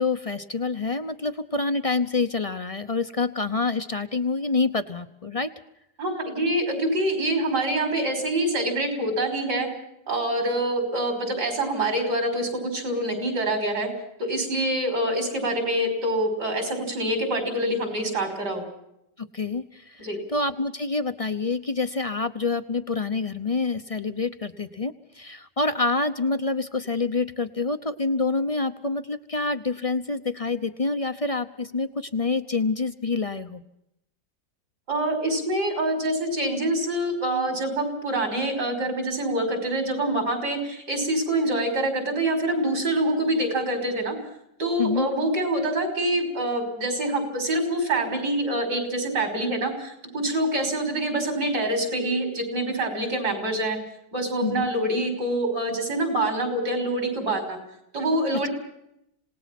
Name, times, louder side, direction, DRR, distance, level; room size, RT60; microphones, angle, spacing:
voice 1, 0.0-5.5 19.2-33.6 44.8-45.1 54.4-54.7, left 3 dB, 35° left, 9 dB, 0.6 m, -27 dB
voice 2, 6.0-9.7 10.1-13.9 14.2-18.6 20.0-20.2 34.9-44.1 44.6-53.8 54.1-57.6 57.9-58.5, right 1 dB, 80° right, 5 dB, 6.3 m, -25 dB
27.0 x 18.5 x 6.0 m, 0.80 s
omnidirectional pair, 1.8 m